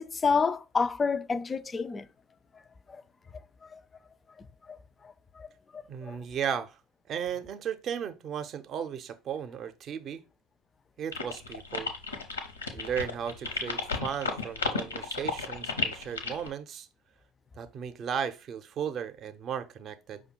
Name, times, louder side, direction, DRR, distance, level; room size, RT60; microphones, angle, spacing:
voice 1, 0.0-2.0 3.7-3.8 4.7-4.8 5.4-5.5 5.7-6.2, left 5 dB, 25° left, 0.3 m, -29 dB
voice 2, 5.9-6.8 7.1-10.2 11.0-11.9 12.7-16.9 17.6-20.2, right 8 dB, 45° right, 0.5 m, -35 dB
sound 1, 11.1-16.5, left 5 dB, 85° left, 0.7 m, -33 dB
5.2 x 2.2 x 4.4 m
figure-of-eight pair, 65°, 0 cm